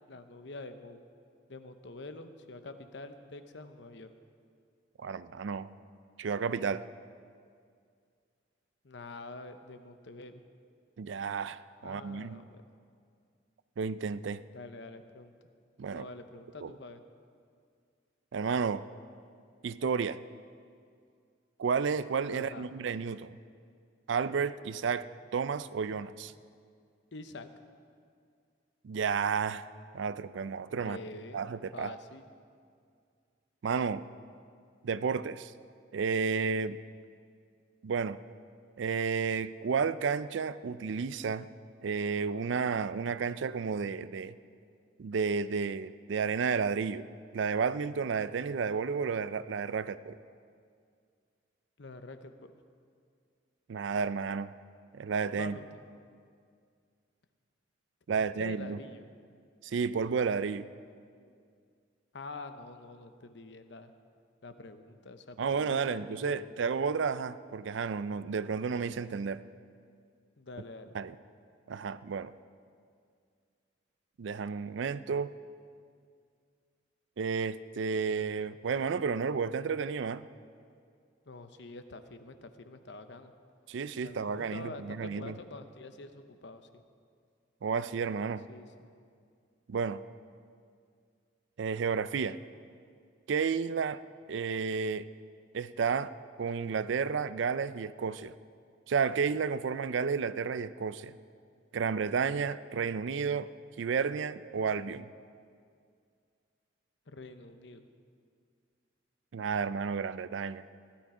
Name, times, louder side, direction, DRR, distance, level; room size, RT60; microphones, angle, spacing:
voice 1, 0.1-1.0 1.5-4.1 8.8-10.4 11.8-12.6 14.5-15.3 15.8-17.0 22.3-22.7 27.1-27.5 30.8-31.4 31.7-32.3 51.8-52.5 55.3-55.8 58.2-59.1 62.1-63.9 64.4-66.7 70.4-71.0 81.3-83.3 84.0-86.8 88.5-88.7 107.1-107.9, left 2 dB, 65° left, 9 dB, 0.8 m, -46 dB
voice 2, 5.0-5.7 6.2-6.8 11.0-12.4 13.8-14.4 15.8-16.1 16.6-16.7 18.3-18.9 19.6-20.2 21.6-23.4 24.1-25.1 25.3-26.3 28.8-29.7 29.9-31.0 31.3-31.9 33.6-34.0 34.8-35.5 35.9-36.8 37.8-38.2 38.8-41.5 41.8-44.3 45.0-47.1 47.3-50.2 53.7-54.5 54.9-55.6 58.1-58.8 59.6-60.7 65.4-69.4 70.9-71.2 71.7-72.3 74.2-75.3 77.2-80.3 83.7-85.3 87.6-88.4 89.7-90.0 91.6-92.4 93.3-94.0 94.3-95.1 95.5-96.1 96.4-98.3 98.9-101.1 101.7-103.5 103.8-105.1 109.3-110.6, right 5 dB, 75° right, 15 dB, 0.4 m, -32 dB
16.0 x 11.5 x 5.0 m, 2.2 s
head